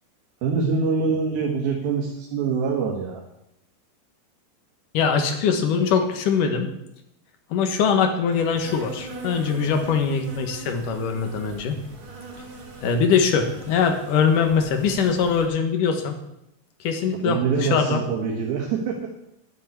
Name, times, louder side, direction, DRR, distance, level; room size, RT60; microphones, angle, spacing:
voice 1, 0.4-3.2 17.1-19.2, right 5 dB, 70° right, -1 dB, 3.5 m, -25 dB
voice 2, 4.9-6.7 7.5-11.8 12.8-16.2 16.8-18.0, left 6 dB, 65° left, 6 dB, 2.7 m, -22 dB
Insect, 8.3-15.5, right 3 dB, 45° right, 4.4 m, -41 dB
11.0 x 7.5 x 9.8 m, 0.83 s
omnidirectional pair, 4.6 m